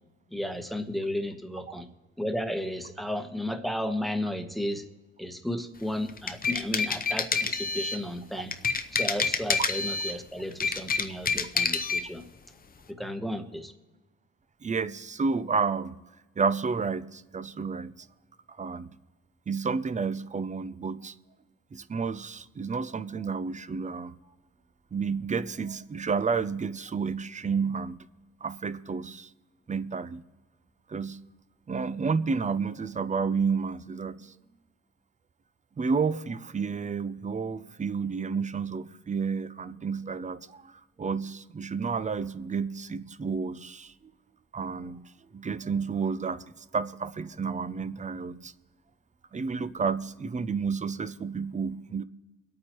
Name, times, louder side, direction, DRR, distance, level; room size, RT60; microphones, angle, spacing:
voice 1, 0.3-1.9 2.2-4.8 5.2-8.5 8.9-12.2 12.9-13.7, left 1 dB, ahead, 6 dB, 1.1 m, -33 dB
sound 1, 6.1-8.0 8.5-10.2 10.5-12.0, left 5 dB, 30° left, 0.7 m, -28 dB
voice 2, 14.6-16.0 16.4-17.9 18.5-18.9 19.5-21.1 21.7-24.1 24.9-28.0 28.4-29.3 29.7-30.2 30.9-31.2 31.7-34.3 35.8-43.9 44.5-45.0 45.3-46.4 46.7-48.5 49.3-52.0, right 5 dB, 25° right, 15 dB, 0.5 m, -30 dB
24.0 x 8.7 x 3.1 m, 1.2 s
cardioid pair, 90°, 30 cm